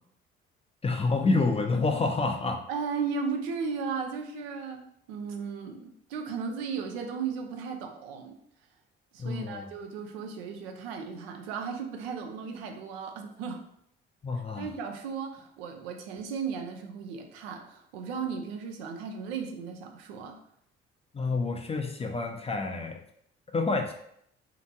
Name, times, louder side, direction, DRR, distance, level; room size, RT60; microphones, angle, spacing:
voice 1, 0.8-2.6 9.2-9.7 14.2-14.7 21.1-23.0 23.5-23.9, left 3 dB, 20° left, 4 dB, 0.4 m, -28 dB
voice 2, 2.7-4.8 5.1-8.4 9.1-13.6 14.6-20.4, right 5 dB, 75° right, 4 dB, 0.5 m, -35 dB
2.8 x 2.5 x 2.2 m, 0.70 s
hypercardioid pair, 50°, 31 cm